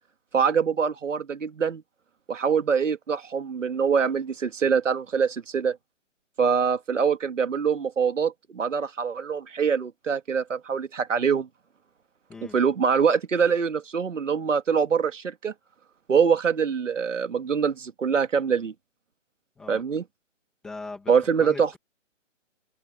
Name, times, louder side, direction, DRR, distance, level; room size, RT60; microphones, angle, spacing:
voice 1, 0.3-1.8 2.3-5.8 6.4-11.5 12.5-15.5 16.1-18.7 19.7-20.0 21.1-21.7, right 6 dB, 75° right, 2.6 m, -24 dB
voice 2, 20.6-21.1 21.4-21.8, left 3 dB, ahead, 1.1 m, -39 dB
hypercardioid pair, 180°, 38 cm